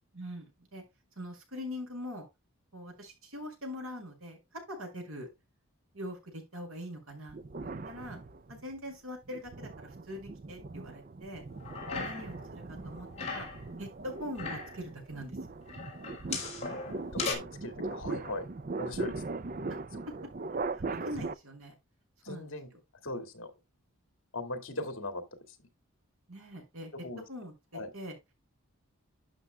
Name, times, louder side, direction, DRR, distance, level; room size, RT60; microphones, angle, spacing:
voice 1, 0.1-0.8 1.2-2.3 2.7-4.4 4.7-5.3 5.9-7.4 7.6-8.2 8.5-11.4 11.9-13.5 13.8-15.4 20.9-21.8 22.3-22.6 26.3-26.9 27.3-27.5 27.9-28.1, equal, 75° right, 6.0 m, -42 dB
sound 1, 7.3-8.7 9.3-21.3, right 3 dB, 40° right, 0.5 m, -40 dB
sound 2, 11.6-12.5 12.7-13.6 14.2-14.8 15.7-17.3, left 4 dB, 30° left, 3.5 m, -38 dB
voice 2, 17.1-18.5 18.8-19.2 22.2-22.7 23.0-23.5 24.3-25.2 27.0-27.2 27.7-27.9, left 2 dB, 65° left, 2.3 m, -39 dB
11.5 x 7.7 x 2.3 m
head